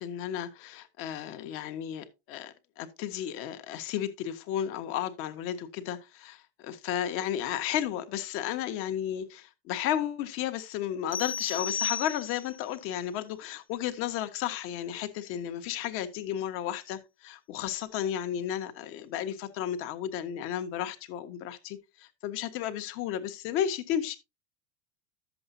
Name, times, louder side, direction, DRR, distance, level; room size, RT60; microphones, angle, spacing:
voice 1, 0.0-24.2, left 10 dB, 45° left, 1.3 m, -33 dB
sound 1, 11.1-12.6, left 7 dB, 20° left, 0.6 m, -33 dB
12.0 x 7.6 x 2.7 m
supercardioid pair, 165°, 30 cm